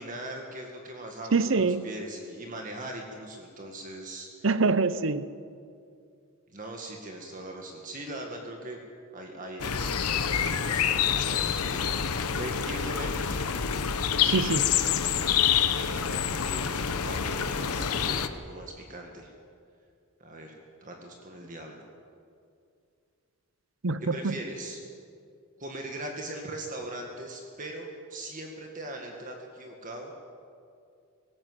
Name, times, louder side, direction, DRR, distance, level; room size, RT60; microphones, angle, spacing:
voice 1, 0.0-4.3 6.5-8.8 9.1-11.9 12.4-13.4 14.0-14.1 15.8-19.3 20.2-21.8 24.0-24.8 25.6-30.1, right 1 dB, 35° right, 1 dB, 1.9 m, -40 dB
voice 2, 1.3-1.9 4.4-5.3 14.2-14.6 23.8-24.4, right 4 dB, 60° right, 15 dB, 0.7 m, -25 dB
sound 1, 9.6-18.3, left 8 dB, 90° left, 1.0 m, -27 dB
18.5 x 18.0 x 8.1 m, 2.4 s
head